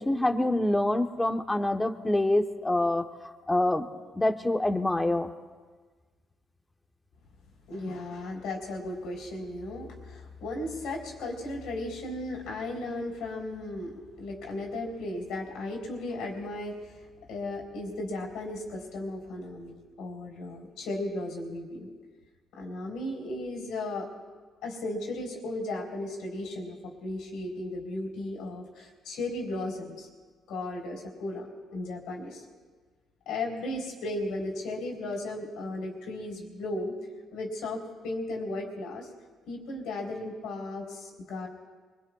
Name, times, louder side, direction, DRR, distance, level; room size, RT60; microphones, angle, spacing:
voice 1, 0.0-3.1 3.5-3.9 4.1-5.3, left 1 dB, 15° left, 5 dB, 1.1 m, -26 dB
voice 2, 7.7-17.0 17.3-21.9 22.5-24.1 24.6-30.1 30.5-31.5 31.7-32.4 33.3-36.9 37.3-39.1 39.5-41.5, left 2 dB, 90° left, 0 dB, 3.7 m, -35 dB
24.0 x 23.0 x 2.4 m, 1.4 s
cardioid pair, 90°, 0 cm